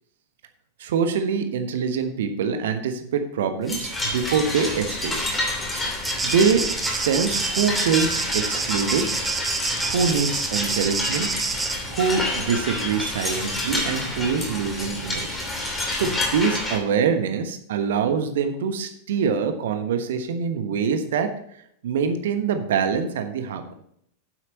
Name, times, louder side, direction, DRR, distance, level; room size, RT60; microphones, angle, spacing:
voice 1, 0.8-5.2 6.2-9.2 9.8-11.3 11.9-15.4 15.9-21.4 21.8-23.7, right 6 dB, 60° right, 8 dB, 1.2 m, -24 dB
sound 1, 3.7-16.8, left 1 dB, 10° left, 2.8 m, -29 dB
sound 2, 6.0-11.7, right 4 dB, 15° right, 0.9 m, -28 dB
9.3 x 7.9 x 4.0 m, 0.72 s
figure-of-eight pair, 90°, 0 cm